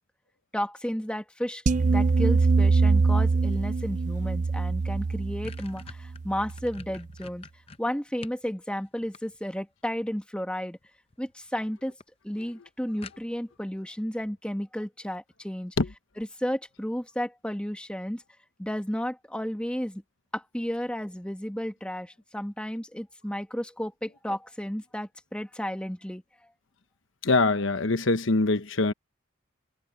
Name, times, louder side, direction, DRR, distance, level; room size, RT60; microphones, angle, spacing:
voice 1, 0.5-7.5 7.8-10.8 11.2-11.9 12.2-15.8 16.2-18.2 18.6-20.0 20.3-26.2, equal, 5° left, 1.6 m, -33 dB
sound 1, 1.7-6.9, right 4 dB, 35° right, 0.4 m, -24 dB
sound 2, 4.6-4.7 5.0-8.5 8.8-9.7 10.8-11.2 11.6-11.7 12.0-12.1 12.4-12.5 13.0-13.6, left 4 dB, 30° left, 0.7 m, -47 dB
voice 2, 27.2-28.9, left 3 dB, 70° left, 1.0 m, -23 dB
head